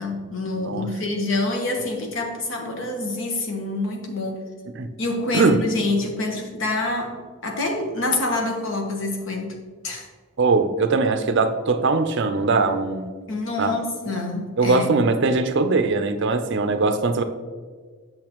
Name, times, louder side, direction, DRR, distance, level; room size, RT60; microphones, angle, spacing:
voice 1, 0.0-4.4 5.0-9.5 9.8-10.1 13.3-15.0, left 2 dB, 60° left, 2 dB, 1.2 m, -26 dB
voice 2, 10.4-13.1 13.6-13.8 14.6-17.2, right 3 dB, 55° right, 8 dB, 0.5 m, -21 dB
8.4 x 6.4 x 3.0 m, 1.5 s
head